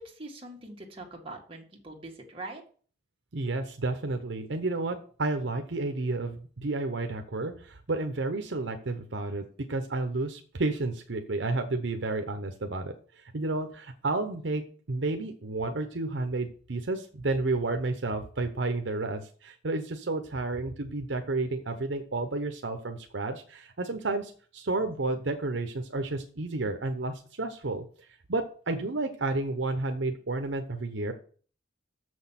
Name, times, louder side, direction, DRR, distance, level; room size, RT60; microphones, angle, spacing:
voice 1, 0.0-2.6, right 2 dB, 30° right, 0 dB, 1.9 m, -43 dB
voice 2, 3.3-27.8 28.3-31.1, right 2 dB, 70° right, 6 dB, 0.8 m, -31 dB
6.9 x 6.3 x 5.8 m, 0.43 s
head